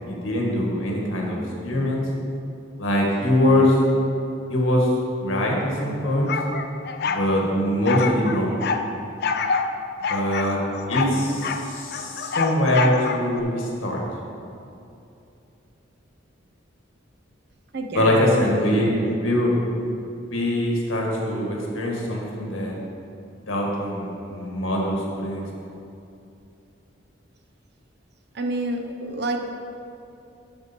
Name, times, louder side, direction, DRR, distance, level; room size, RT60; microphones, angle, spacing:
voice 1, 0.1-2.0 2.8-3.8 4.5-4.9 5.2-6.3 7.0-8.6 10.1-10.6 10.9-14.0 17.9-19.6 20.3-22.7 23.5-25.4, left 1 dB, 85° left, -2 dB, 1.6 m, -23 dB
sound 1, 6.3-7.3 7.8-8.8 9.2-9.7 10.0-11.6 11.9-13.4, left 5 dB, 55° left, 0.4 m, -26 dB
voice 2, 17.7-19.2 28.3-29.5, right 1 dB, 55° right, 4 dB, 0.7 m, -28 dB
11.5 x 4.5 x 4.3 m, 2.7 s
head